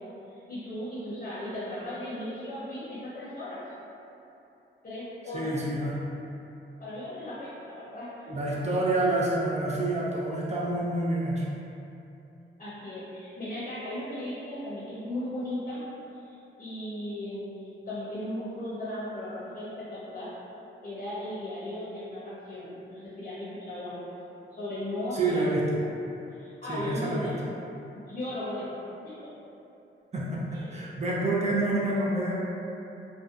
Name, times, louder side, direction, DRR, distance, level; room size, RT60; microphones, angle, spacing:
voice 1, 0.3-3.6 4.8-5.5 6.8-8.3 12.6-15.8 16.1-17.6 17.9-20.3 20.8-24.0 24.5-25.5 26.3-27.4 27.9-28.7 29.0-29.2 30.5-30.8, left 1 dB, 35° left, -10 dB, 0.7 m, -36 dB
voice 2, 5.3-6.0 8.3-11.5 25.1-25.8 26.7-27.3 30.1-32.3, right 2 dB, 35° right, -5 dB, 0.6 m, -28 dB
2.6 x 2.2 x 2.4 m, 2.9 s
cardioid pair, 70°, 21 cm